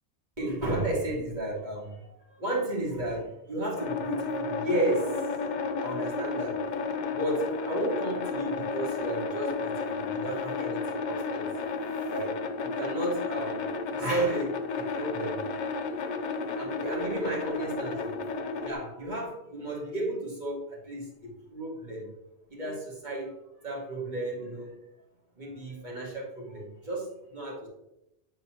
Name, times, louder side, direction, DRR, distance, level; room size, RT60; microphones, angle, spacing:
voice 1, 0.4-5.3 5.8-6.6 7.1-11.6 11.9-15.6 16.1-16.2 16.6-22.1 22.5-23.4 23.6-24.8 25.4-27.7, right 1 dB, 40° right, -4 dB, 2.0 m, -33 dB
sound 1, 3.8-18.7, left 4 dB, 55° left, 0.6 m, -32 dB
8.6 x 4.1 x 2.9 m, 0.86 s
omnidirectional pair, 1.2 m